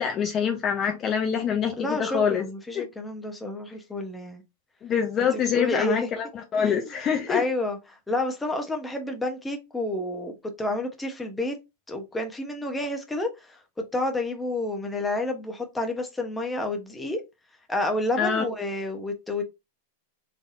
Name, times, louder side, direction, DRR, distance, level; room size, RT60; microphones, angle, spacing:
voice 1, 0.0-2.4 2.7-2.8 4.8-6.3 6.5-7.4 18.2-18.4, left 7 dB, 30° left, 0.9 m, -25 dB
voice 2, 1.8-4.4 5.2-6.1 6.5-6.9 7.3-11.6 11.9-13.6 13.9-17.2 17.7-19.4, left 2 dB, 10° left, 1.1 m, -30 dB
4.0 x 3.4 x 2.6 m
hypercardioid pair, 100°, 0 cm